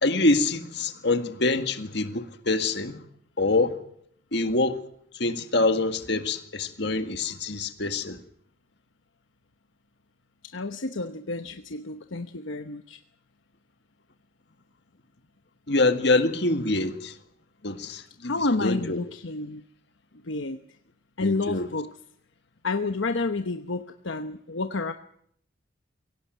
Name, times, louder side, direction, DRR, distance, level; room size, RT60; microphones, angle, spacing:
voice 1, 0.0-3.0 3.4-3.8 4.3-4.8 5.2-8.2 15.7-17.1 17.6-18.3 18.6-19.0 21.2-21.7, left 2 dB, 55° left, 1.9 m, -25 dB
voice 2, 10.4-13.0 18.2-19.6 20.2-20.6 21.2-22.0 22.6-24.9, left 3 dB, 75° left, 1.0 m, -30 dB
23.5 x 17.0 x 9.2 m
head